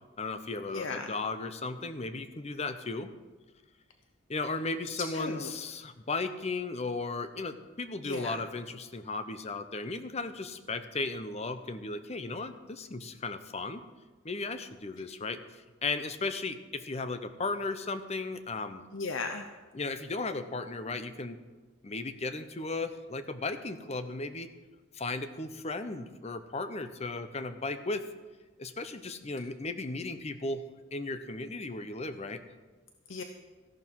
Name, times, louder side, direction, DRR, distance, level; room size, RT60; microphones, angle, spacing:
voice 1, 0.2-3.1 4.3-13.8 14.2-18.8 19.7-21.4 21.8-24.5 24.9-28.0 28.6-30.6 30.9-32.4, left 3 dB, 30° left, 10 dB, 0.7 m, -35 dB
voice 2, 0.7-1.1 5.1-5.5 8.0-8.4 18.9-19.5 33.1-33.2, left 3 dB, 65° left, 6 dB, 0.7 m, -36 dB
14.0 x 11.5 x 4.7 m, 1.3 s
head